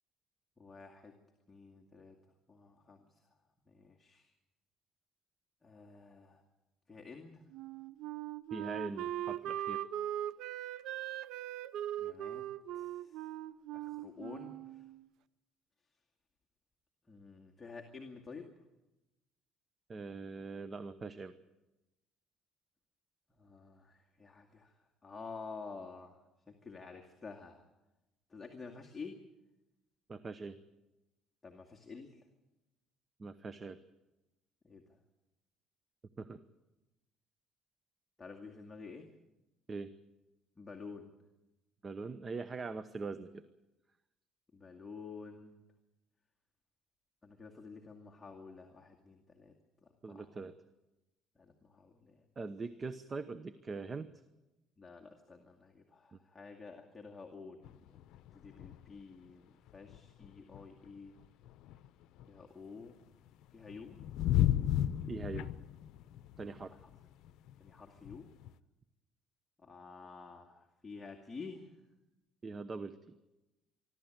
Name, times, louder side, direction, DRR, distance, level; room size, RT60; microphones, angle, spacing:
voice 1, 0.6-1.2 1.5-2.2 2.5-3.3 3.7-4.3 5.6-6.4 6.9-7.4 12.0-13.3 13.7-14.9 17.1-18.5 23.4-26.2 26.5-27.6 28.3-29.2 31.4-32.2 34.6-35.0 38.2-39.1 40.6-41.1 44.5-45.6 47.2-49.5 49.8-50.3 51.4-52.3 54.8-58.0 58.3-61.2 62.3-63.0 63.5-64.0 66.7-66.9 67.6-68.3 69.6-71.7, left 4 dB, 15° left, 0 dB, 2.2 m, -50 dB
Wind instrument woodwind instrument, 7.5-15.0, right 12 dB, 70° right, 0.7 m, -40 dB
voice 2, 8.5-9.8 19.9-21.3 30.1-30.6 33.2-33.8 36.2-36.4 39.7-39.9 41.8-43.4 50.0-50.5 52.4-54.1 56.1-56.2 65.1-65.5 66.4-66.7 72.4-73.2, right 4 dB, 30° right, 13 dB, 0.9 m, -42 dB
sound 1, 57.6-59.0 59.3-59.4 59.7-62.4 63.0-68.5, left 12 dB, 70° left, 0.7 m, -35 dB
25.0 x 13.0 x 9.1 m, 1.0 s
cardioid pair, 110°, 0 cm